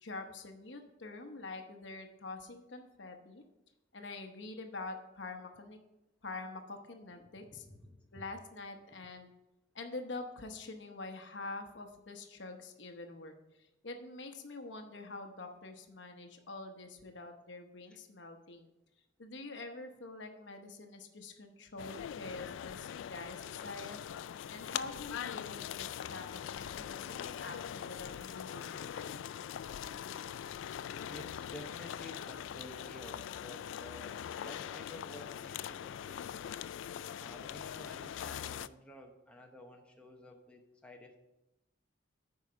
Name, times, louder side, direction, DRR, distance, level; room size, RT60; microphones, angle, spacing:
voice 1, 0.0-3.4 3.9-5.8 6.2-7.7 8.1-9.3 9.7-18.7 19.2-24.0 24.5-29.2, left 3 dB, 70° left, 5 dB, 0.9 m, -46 dB
voice 2, 7.5-8.2 17.9-18.0 31.1-36.5 37.2-41.2, left 1 dB, 5° left, 1 dB, 0.8 m, -52 dB
sound 1, 21.8-38.7, left 9 dB, 85° left, 0.3 m, -42 dB
9.0 x 4.8 x 5.5 m, 0.94 s
head